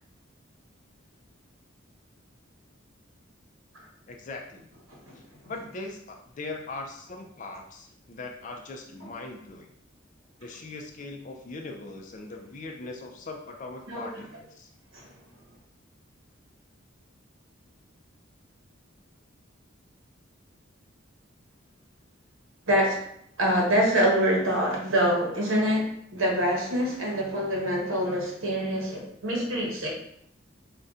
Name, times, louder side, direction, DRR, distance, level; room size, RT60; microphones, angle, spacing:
voice 1, 4.1-4.7 5.2-9.7 10.4-14.7, left 3 dB, 40° left, 3 dB, 0.4 m, -40 dB
voice 2, 13.9-14.2 14.9-15.1 22.7-23.0 23.4-29.9, equal, 80° right, -1 dB, 0.9 m, -25 dB
2.6 x 2.2 x 3.5 m, 0.70 s
head